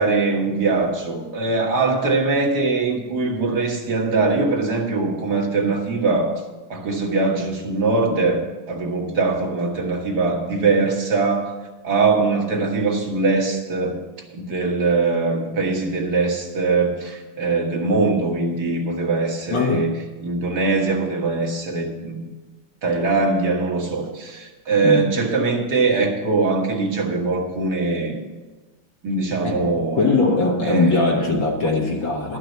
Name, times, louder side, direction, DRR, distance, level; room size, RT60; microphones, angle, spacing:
voice 1, 0.0-6.3 6.7-11.5 11.8-14.0 14.3-19.9 20.2-22.2 22.8-28.2 29.0-30.1 30.6-31.4, right 3 dB, 55° right, 1 dB, 2.1 m, -22 dB
voice 2, 19.5-19.9 24.8-25.1 29.4-32.4, left 3 dB, 75° left, 0 dB, 2.1 m, -21 dB
12.0 x 5.9 x 8.0 m, 1.2 s
omnidirectional pair, 2.1 m